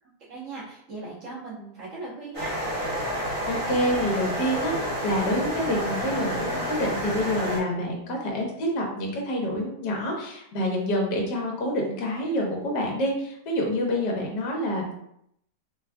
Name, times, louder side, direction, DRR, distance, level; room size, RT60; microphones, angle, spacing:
voice 1, 0.0-2.6, right 3 dB, 50° right, -7 dB, 1.6 m, -39 dB
sound 1, 2.3-7.6, equal, 20° right, 1.3 m, -29 dB
voice 2, 3.5-14.9, equal, 75° left, 0 dB, 1.5 m, -27 dB
3.8 x 2.4 x 3.4 m, 0.72 s
omnidirectional pair, 1.8 m